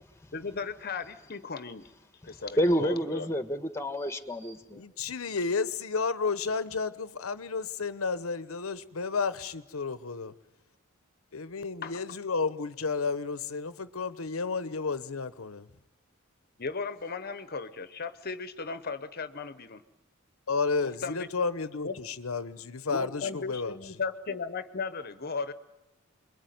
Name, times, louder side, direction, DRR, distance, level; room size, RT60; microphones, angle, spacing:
voice 1, 0.3-1.9 2.3-3.3 11.8-12.0 16.6-19.8 20.8-21.3 21.8-22.0 22.9-25.5, left 4 dB, 45° left, 1.0 m, -36 dB
voice 2, 2.2-4.8, equal, 15° left, 1.5 m, -29 dB
voice 3, 4.7-10.3 11.3-15.7 20.5-23.7, left 4 dB, 80° left, 0.9 m, -32 dB
28.5 x 22.0 x 9.4 m
head